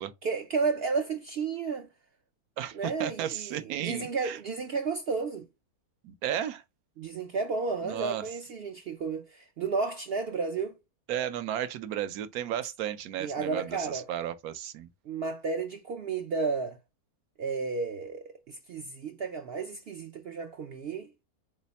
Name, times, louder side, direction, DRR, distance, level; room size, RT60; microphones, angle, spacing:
voice 1, 0.2-1.9 2.7-5.4 7.0-10.7 13.2-14.1 15.1-16.8 17.4-21.1, right 4 dB, 60° right, 0.6 m, -32 dB
voice 2, 2.6-4.4 6.0-6.6 7.8-8.2 11.1-14.9, right 11 dB, 80° right, 1.1 m, -34 dB
4.1 x 3.2 x 4.1 m
omnidirectional pair, 1.5 m